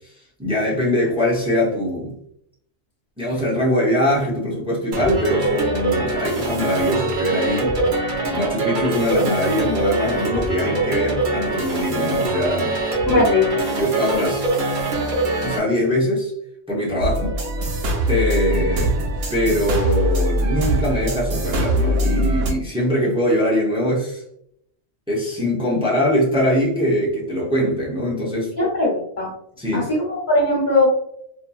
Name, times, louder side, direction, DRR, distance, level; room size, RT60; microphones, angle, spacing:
voice 1, 0.4-2.1 3.2-7.8 8.3-12.8 13.1-13.3 13.7-14.5 15.4-16.3 16.7-17.4 18.1-18.9 19.3-24.2 25.1-28.5 29.6-29.9, equal, 5° right, -5 dB, 0.5 m, -22 dB
sound 1, 4.9-15.6, right 2 dB, 55° right, 0.7 m, -23 dB
voice 2, 13.1-13.7 28.6-29.3 29.7-30.9, left 2 dB, 65° left, -4 dB, 1.2 m, -20 dB
sound 2, 17.0-22.5, right 1 dB, 85° right, 1.0 m, -22 dB
2.8 x 2.5 x 2.3 m, 0.72 s
omnidirectional pair, 1.1 m